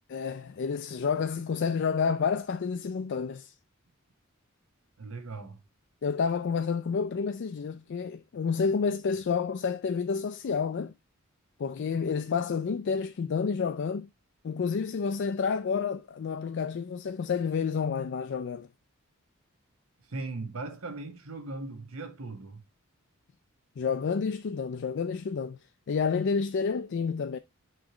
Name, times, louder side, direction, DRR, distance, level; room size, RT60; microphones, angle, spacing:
voice 1, 0.1-3.5 6.0-10.9 11.6-14.1 14.4-18.7 23.8-25.6 25.9-27.4, left 5 dB, 55° left, 0.4 m, -29 dB
voice 2, 5.0-5.6 20.1-22.6, right 3 dB, 75° right, 1.1 m, -38 dB
6.1 x 3.1 x 4.9 m
head